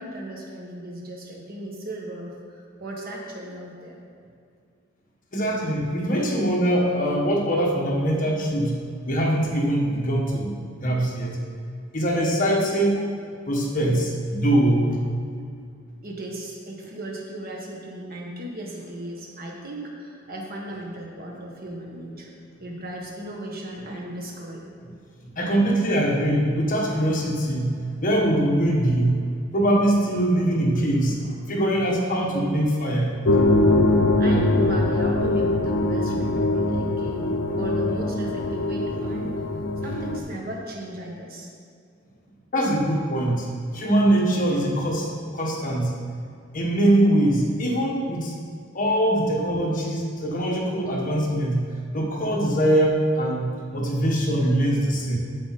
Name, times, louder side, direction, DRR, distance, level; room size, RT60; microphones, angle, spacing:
voice 1, 0.0-4.0 16.0-22.3 22.6-24.6 34.2-39.3 39.8-41.5, right 1 dB, 50° right, -1 dB, 1.7 m, -36 dB
voice 2, 5.3-11.4 11.9-13.1 13.5-15.0 24.8-24.9 25.3-29.3 29.5-33.2 42.5-43.5 43.7-46.0 46.5-48.3 48.7-55.2, right 1 dB, 45° left, -2 dB, 1.5 m, -22 dB
sound 1, 33.3-40.2, left 2 dB, 70° left, 0.7 m, -22 dB
8.7 x 7.4 x 4.3 m, 2.4 s
head